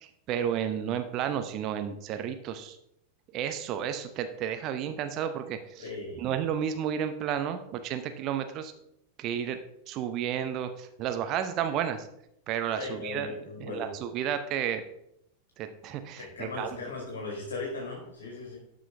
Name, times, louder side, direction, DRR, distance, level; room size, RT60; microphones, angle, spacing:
voice 1, 0.0-2.8 3.3-5.9 6.2-8.7 9.2-9.6 9.9-12.1 12.5-14.8 15.6-16.8, right 9 dB, 35° right, 9 dB, 0.8 m, -32 dB
voice 2, 5.8-6.2 12.8-13.9 16.2-18.6, left 3 dB, 65° left, -2 dB, 2.4 m, -38 dB
12.0 x 6.2 x 3.4 m, 0.77 s
figure-of-eight pair, 90°, 0 cm